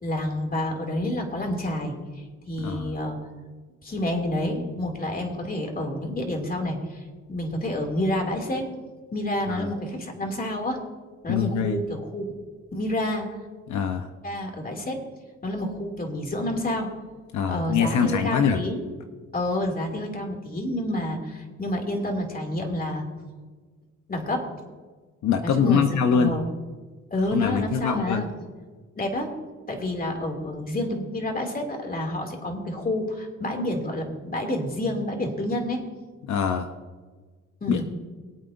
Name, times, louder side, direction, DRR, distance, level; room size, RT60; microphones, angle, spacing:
voice 1, 0.0-1.9 2.5-3.2 3.8-8.7 9.1-10.8 11.2-12.3 12.7-13.3 14.2-15.0 15.4-16.9 17.5-18.8 19.3-23.0 24.1-24.4 25.4-25.9 26.1-26.4 27.1-28.3 29.0-29.3 29.7-35.8 37.6-37.9, left 1 dB, 30° left, 2 dB, 2.6 m, -29 dB
voice 2, 2.6-3.0 9.5-9.7 11.3-11.8 13.7-14.1 17.3-18.6 25.2-26.4 27.3-28.3 36.2-36.7 37.7-37.9, left 7 dB, 70° left, 7 dB, 0.8 m, -24 dB
22.5 x 8.4 x 2.6 m, 1.4 s
cardioid pair, 90°, 30 cm